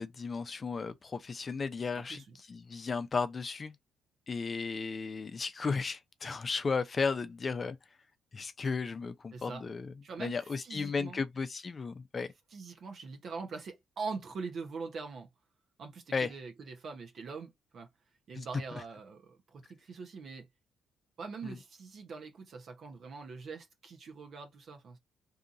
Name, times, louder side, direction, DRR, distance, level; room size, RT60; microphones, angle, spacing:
voice 1, 0.0-2.2 2.5-3.8 4.3-7.8 8.3-9.9 10.2-12.3 16.1-16.3 18.4-18.5 18.7-18.8 21.4-21.6, left 4 dB, 35° left, 0.5 m, -34 dB
voice 2, 1.9-2.4 9.3-9.6 10.0-11.2 12.5-15.3 15.8-17.9 18.3-20.5 21.2-25.0, right 4 dB, 60° right, 0.7 m, -43 dB
2.8 x 2.5 x 2.5 m
cardioid pair, 90°, 0 cm